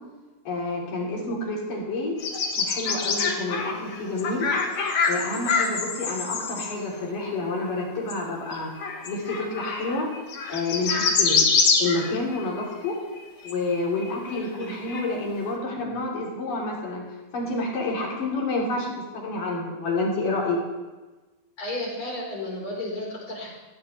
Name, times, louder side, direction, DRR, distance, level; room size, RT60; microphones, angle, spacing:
voice 1, 0.5-2.1 2.6-4.5 5.1-8.7 9.1-10.1 10.5-11.5 11.8-13.0 13.4-17.0 17.3-20.6, left 2 dB, 75° left, -4 dB, 5.3 m, -29 dB
sound 1, 2.2-6.7 8.1-8.2 8.5-12.6 13.2-13.3 13.5-15.1, left 4 dB, 55° left, 2.6 m, -25 dB
voice 2, 21.6-23.6, left 1 dB, 40° left, -3 dB, 5.4 m, -33 dB
17.5 x 16.5 x 3.4 m, 1.2 s
omnidirectional pair, 3.8 m